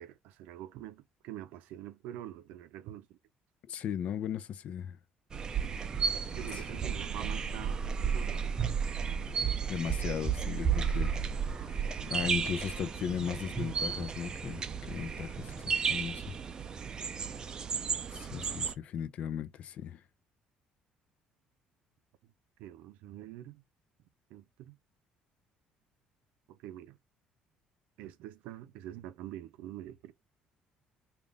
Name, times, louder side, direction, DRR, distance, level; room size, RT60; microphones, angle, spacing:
voice 1, 0.0-3.2 6.3-8.7 22.6-23.6 24.3-24.8 26.5-27.0 28.0-30.1, right 12 dB, 90° right, 0.6 m, -45 dB
voice 2, 3.7-5.0 6.5-6.6 9.7-11.3 11.7-11.8 12.1-16.3 18.1-20.0, left 8 dB, 55° left, 0.5 m, -37 dB
sound 1, 5.3-18.7, right 6 dB, 30° right, 0.4 m, -33 dB
3.4 x 2.4 x 3.6 m
cardioid pair, 140°, 3 cm